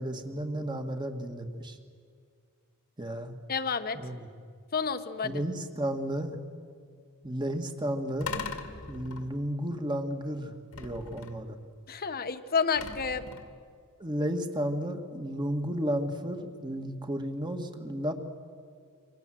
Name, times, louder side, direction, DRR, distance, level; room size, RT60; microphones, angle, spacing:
voice 1, 0.0-1.8 3.0-3.4 3.9-4.3 5.2-6.4 7.2-8.3 8.9-11.6 14.0-18.1, equal, 20° right, 6 dB, 1.9 m, -33 dB
voice 2, 3.5-4.0 4.7-5.4 11.9-13.3, left 5 dB, 45° left, 9 dB, 1.2 m, -30 dB
sound 1, 8.2-9.6 10.7-11.6 12.8-13.7, left 4 dB, 75° left, 2.2 m, -40 dB
28.0 x 26.0 x 7.8 m, 2.1 s
head